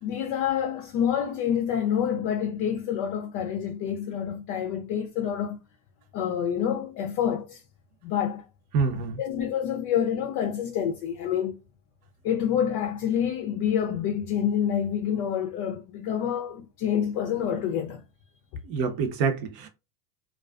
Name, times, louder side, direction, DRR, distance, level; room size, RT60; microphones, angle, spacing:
voice 1, 0.0-5.6 6.1-7.6 8.0-8.4 8.9-11.6 12.2-18.0, left 9 dB, 50° left, 0.5 m, -27 dB
voice 2, 8.7-9.2 18.6-19.7, right 5 dB, 50° right, 0.8 m, -26 dB
2.4 x 2.3 x 2.3 m
hypercardioid pair, 90°, 46 cm